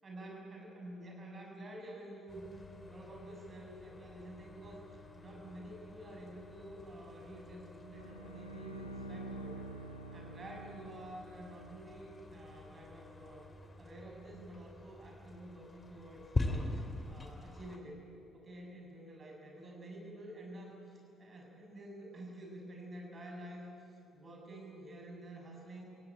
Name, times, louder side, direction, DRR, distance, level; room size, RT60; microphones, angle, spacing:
voice 1, 0.0-2.5 2.8-9.7 10.1-13.4 13.8-18.0 18.3-23.7 24.1-25.8, right 1 dB, 35° right, 0 dB, 7.4 m, -49 dB
sound 1, 2.3-17.8, left 2 dB, 25° left, 2.6 m, -44 dB
Bowed string instrument, 7.9-11.5, right 2 dB, 85° left, 1.1 m, -47 dB
28.0 x 17.5 x 9.0 m, 2.6 s
figure-of-eight pair, 45°, 0 cm